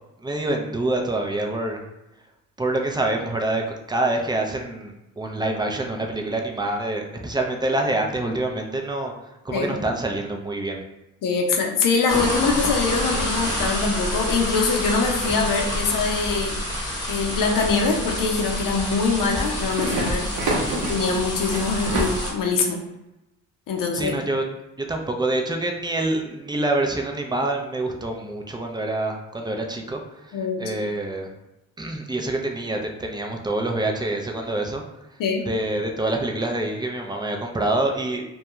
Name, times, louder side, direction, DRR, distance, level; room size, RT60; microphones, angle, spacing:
voice 1, 0.2-1.8 2.6-9.1 9.4-10.8 20.5-20.7 23.9-24.4 24.9-31.3 31.8-34.8 35.5-38.2, right 2 dB, 10° right, 2 dB, 0.4 m, -26 dB
voice 2, 11.2-16.6 17.1-20.3 20.7-22.8 23.7-24.1 30.3-30.8 35.2-35.5, left 4 dB, 65° left, 2 dB, 0.6 m, -23 dB
sound 1, 12.1-22.3, left 1 dB, 10° left, 1.0 m, -28 dB
sound 2, 15.3-15.6 19.4-22.2, right 2 dB, 60° right, 0.7 m, -29 dB
2.3 x 2.2 x 2.9 m, 0.93 s
supercardioid pair, 60°, 35 cm